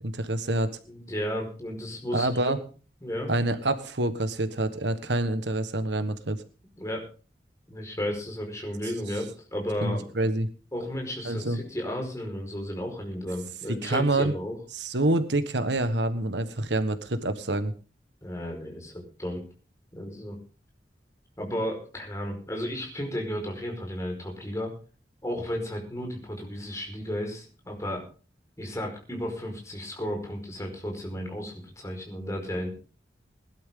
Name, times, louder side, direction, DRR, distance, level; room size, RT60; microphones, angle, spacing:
voice 1, 0.0-0.7 2.1-2.6 3.3-6.4 9.8-10.5 11.2-11.6 13.7-14.3 14.7-17.7, right 2 dB, 90° right, 10 dB, 1.5 m, -27 dB
voice 2, 0.9-2.3 3.0-3.3 6.8-7.1 7.7-10.1 10.7-14.6 18.2-19.4 19.9-20.4 21.4-24.7 25.2-28.1 28.6-32.7, equal, 20° left, 1 dB, 5.0 m, -33 dB
20.5 x 12.0 x 3.8 m, 0.36 s
head